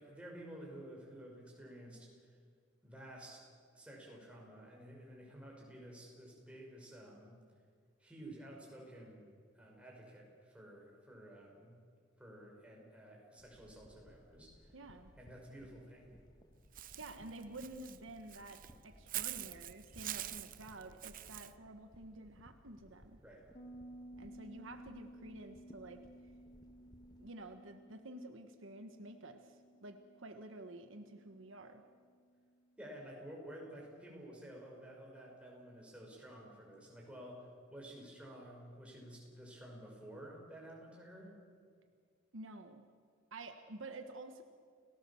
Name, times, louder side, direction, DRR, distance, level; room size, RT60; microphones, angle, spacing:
voice 1, 0.0-2.3 2.8-3.5 3.7-7.3 8.0-9.3 9.5-11.7 12.2-14.8 15.2-16.1 23.2-23.4 32.8-41.4, right 1 dB, 5° right, -2 dB, 5.7 m, -52 dB
sound 1, 13.4-27.3, equal, 20° left, 1.4 m, -62 dB
voice 2, 14.7-15.1 16.9-23.2 24.2-26.0 27.2-31.8 42.3-42.8 43.3-44.4, right 2 dB, 70° right, 6 dB, 1.4 m, -50 dB
Walk footsteps / Bird, 16.7-21.5, right 13 dB, 40° right, 0.7 m, -45 dB
Bass guitar, 23.5-32.9, right 1 dB, 35° left, 3.0 m, -57 dB
30.0 x 17.5 x 7.1 m, 2.1 s
head